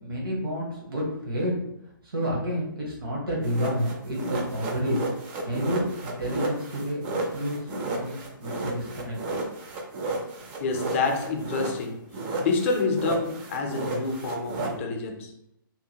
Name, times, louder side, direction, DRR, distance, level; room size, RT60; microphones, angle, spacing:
voice 1, 0.0-1.6 2.0-5.0 5.4-9.2, equal, 80° right, -3 dB, 1.1 m, -30 dB
sound 1, 3.4-11.9 12.1-14.7, right 2 dB, 25° right, 0.4 m, -32 dB
voice 2, 10.6-12.0 12.4-15.3, left 3 dB, 35° left, 4 dB, 0.5 m, -28 dB
2.8 x 2.2 x 2.8 m, 0.77 s
hypercardioid pair, 145°, 12 cm